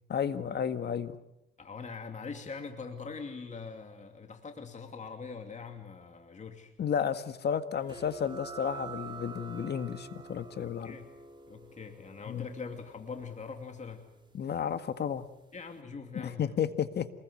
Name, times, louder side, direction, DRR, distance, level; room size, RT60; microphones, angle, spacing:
voice 1, 0.1-1.2 6.8-11.0 12.3-12.5 14.3-15.3 16.1-17.1, left 8 dB, 55° left, 10 dB, 1.9 m, -32 dB
voice 2, 1.6-6.7 10.6-11.1 11.5-14.1 15.5-16.6, left 5 dB, 35° left, 5 dB, 2.7 m, -43 dB
sound 1, 7.9-15.1, right 4 dB, 25° right, 3.6 m, -48 dB
27.0 x 21.0 x 8.0 m, 0.88 s
cardioid pair, 90°, 20 cm